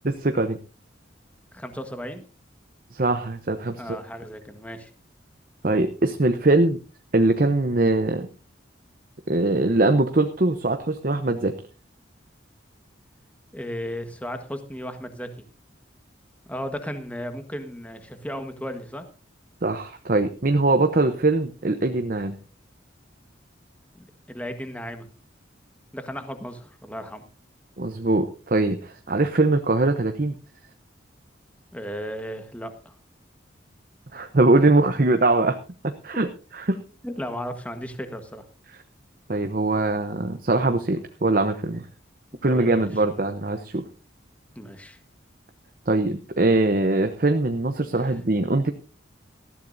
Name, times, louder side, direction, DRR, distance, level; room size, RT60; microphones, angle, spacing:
voice 1, 0.0-0.6 2.9-4.0 5.6-6.8 7.1-8.3 9.3-11.6 19.6-22.4 27.8-30.4 34.1-35.6 36.0-36.3 36.5-36.8 39.3-41.9 42.4-43.8 45.9-48.7, right 2 dB, 45° right, 7 dB, 0.8 m, -22 dB
voice 2, 1.5-2.2 3.8-4.9 13.5-15.5 16.5-19.0 23.9-25.1 25.9-27.2 31.7-32.9 37.0-38.4 42.5-42.9 44.5-45.0 48.0-48.1, equal, 5° left, 7 dB, 1.4 m, -35 dB
19.0 x 14.0 x 2.7 m, 0.35 s
head